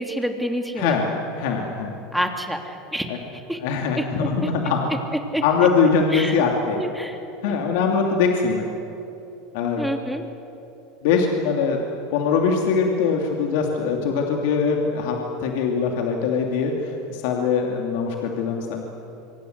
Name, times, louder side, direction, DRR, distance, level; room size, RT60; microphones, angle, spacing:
voice 1, 0.0-0.9 2.1-3.1 3.5-3.6 4.0-4.1 5.3-5.4 6.1-6.4 6.7-7.2 7.5-7.6 9.8-10.2, equal, ahead, 4 dB, 3.0 m, -27 dB
voice 2, 0.8-2.0 3.1-3.2 3.6-4.8 5.4-6.8 7.4-8.7 9.5-9.8 11.0-11.8 12.1-18.8, left 5 dB, 70° left, 2 dB, 2.8 m, -22 dB
26.0 x 24.5 x 8.2 m, 2.9 s
supercardioid pair, 105°, 0 cm